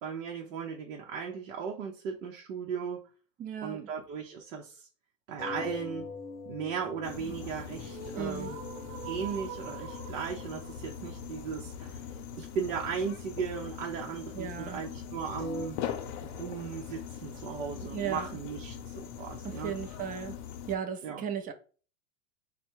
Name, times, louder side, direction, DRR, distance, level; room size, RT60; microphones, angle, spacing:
voice 1, 0.0-3.0 3.6-4.9 5.3-6.1 6.5-8.6 9.0-15.8 16.2-19.7 21.0-21.2, right 6 dB, 80° right, 0.8 m, -37 dB
voice 2, 3.4-3.9 8.1-8.5 14.3-14.8 17.9-18.3 19.4-20.4 20.7-21.5, right 8 dB, 25° right, 0.4 m, -36 dB
sound 1, 5.4-9.6 9.9-10.4 10.8-11.1 11.6-11.7 15.4-15.7, left 4 dB, 25° left, 0.7 m, -43 dB
sound 2, 7.0-20.8, left 8 dB, 60° left, 0.7 m, -42 dB
sound 3, 7.2-13.2, right 5 dB, 45° right, 0.8 m, -45 dB
3.6 x 2.2 x 4.4 m
supercardioid pair, 115°, 38 cm